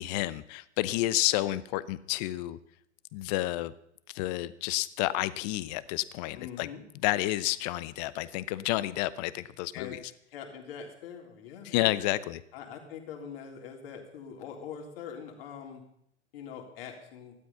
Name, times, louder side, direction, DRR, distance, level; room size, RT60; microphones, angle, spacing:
voice 1, 0.0-2.6 3.1-3.7 4.1-6.7 7.0-10.0 11.6-12.4, left 17 dB, 35° left, 17 dB, 0.8 m, -30 dB
voice 2, 6.3-6.8 9.7-9.9 10.3-12.0 12.5-15.8 16.3-17.3, left 7 dB, 50° left, 2 dB, 3.7 m, -43 dB
15.5 x 12.0 x 5.7 m, 0.74 s
figure-of-eight pair, 105°, 36 cm